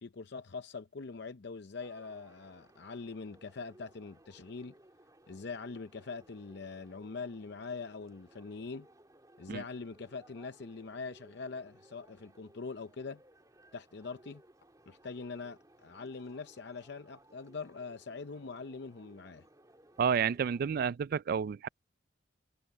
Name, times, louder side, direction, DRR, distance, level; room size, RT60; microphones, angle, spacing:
voice 1, 0.0-4.7 5.3-8.9 9.4-13.2 13.7-14.4 14.9-19.5, left 4 dB, 65° left, 0.6 m, -43 dB
sound 1, 1.8-20.8, right 1 dB, 20° right, 2.7 m, -61 dB
voice 2, 20.0-21.7, right 7 dB, 50° right, 0.3 m, -30 dB
head